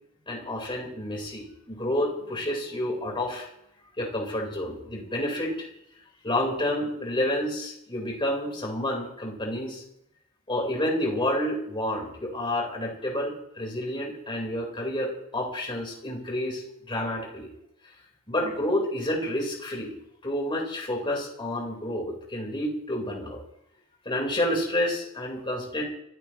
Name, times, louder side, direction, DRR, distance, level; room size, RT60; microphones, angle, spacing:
voice 1, 0.3-3.5 4.0-5.7 6.2-9.8 10.5-17.5 18.3-19.9 20.2-23.4 24.0-25.8, left 1 dB, 25° left, -1 dB, 4.3 m, -29 dB
26.0 x 15.5 x 3.1 m, 0.77 s
head